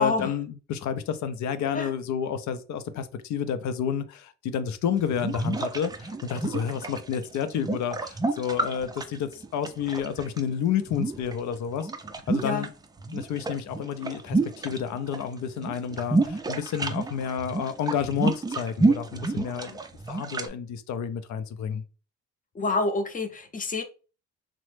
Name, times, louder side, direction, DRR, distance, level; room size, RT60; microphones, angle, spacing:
voice 1, 0.0-11.9 12.3-12.7 13.1-19.8 20.1-21.8, left 8 dB, 70° left, 10 dB, 0.5 m, -30 dB
sound 1, 5.0-10.4 10.9-12.7 13.0-15.2 15.5-20.5, right 3 dB, 15° right, 0.3 m, -29 dB
voice 2, 22.5-23.8, left 3 dB, 25° left, 6 dB, 0.6 m, -27 dB
3.0 x 2.0 x 3.2 m, 0.34 s
cardioid pair, 90°, 30 cm